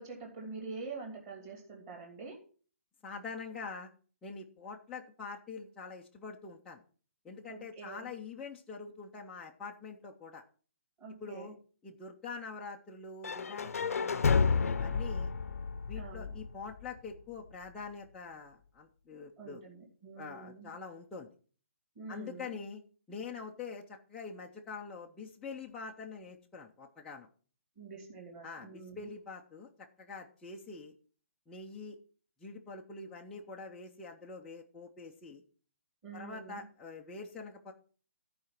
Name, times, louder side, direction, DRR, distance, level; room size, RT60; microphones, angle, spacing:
voice 1, 0.0-2.4 7.5-8.1 11.0-11.5 16.0-16.3 19.4-20.7 22.0-22.5 27.8-29.1 36.0-36.6, right 4 dB, 20° right, -1 dB, 2.4 m, -46 dB
voice 2, 3.0-3.9 4.2-6.8 7.2-10.4 11.2-11.5 11.8-15.3 15.9-19.6 20.2-21.3 22.1-22.8 23.1-27.3 28.4-30.9 31.5-32.0 32.4-35.4 36.1-37.7, left 4 dB, 5° left, -4 dB, 0.5 m, -45 dB
sound 1, 13.2-17.2, left 5 dB, 85° left, 0.7 m, -31 dB
14.0 x 4.8 x 5.8 m, 0.41 s
hypercardioid pair, 175°, 8 cm